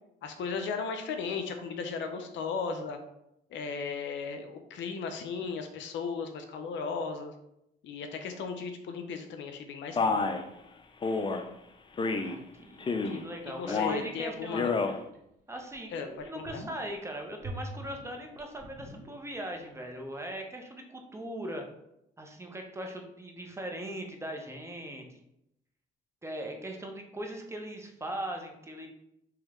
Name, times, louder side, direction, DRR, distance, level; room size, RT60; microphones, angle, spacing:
voice 1, 0.2-3.0 3.5-7.3 7.8-10.2 13.0-15.0 15.9-16.1 16.3-16.6, left 5 dB, 70° left, 6 dB, 0.6 m, -36 dB
Male speech man speaking, 10.0-10.4 11.0-11.4 12.0-12.4 12.8-13.2 13.6-14.1 14.5-14.9, left 4 dB, 25° left, 0.4 m, -29 dB
voice 2, 12.2-14.6 15.5-21.7 22.2-25.2 26.2-28.9, right 1 dB, 15° right, 3 dB, 0.8 m, -40 dB
sound 1, 15.1-15.2 15.7-15.8 16.2-17.0 17.4-19.6 19.9-20.0, right 1 dB, 45° right, 1.2 m, -43 dB
3.2 x 3.0 x 3.6 m, 0.81 s
supercardioid pair, 75°, 20 cm